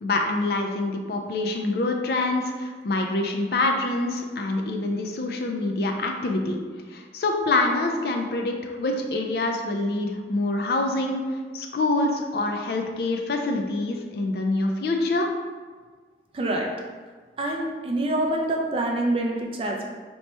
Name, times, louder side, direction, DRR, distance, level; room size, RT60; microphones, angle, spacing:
voice 1, 0.0-6.6 6.9-15.3, left 2 dB, 60° left, 3 dB, 0.4 m, -26 dB
voice 2, 16.3-16.7 17.4-19.9, right 1 dB, 30° right, 1 dB, 0.4 m, -26 dB
3.0 x 2.2 x 4.2 m, 1.5 s
head